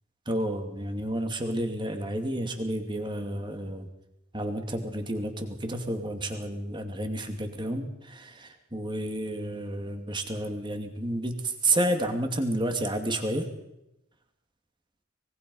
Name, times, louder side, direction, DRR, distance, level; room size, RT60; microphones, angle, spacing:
voice 1, 0.3-3.9 4.3-13.5, right 1 dB, 20° right, 5 dB, 2.5 m, -30 dB
24.5 x 22.0 x 5.5 m, 0.87 s
head